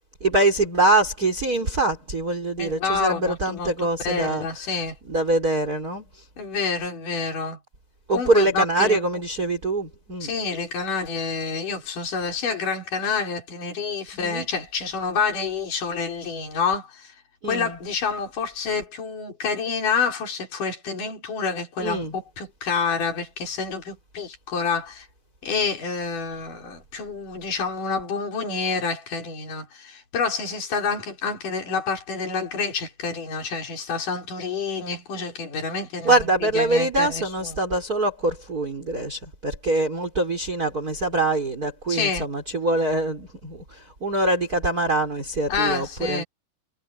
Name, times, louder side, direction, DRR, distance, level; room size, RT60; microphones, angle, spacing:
voice 1, 0.2-4.5 5.1-6.0 8.1-10.3 14.1-14.5 17.4-17.8 21.8-22.1 36.1-46.2, right 2 dB, 25° right, 5.1 m, -24 dB
voice 2, 2.6-4.9 6.4-7.6 8.1-9.0 10.2-17.1 17.4-25.1 25.4-37.6 41.9-42.3 45.5-46.2, left 5 dB, 60° left, 6.4 m, -28 dB
omnidirectional pair, 4.1 m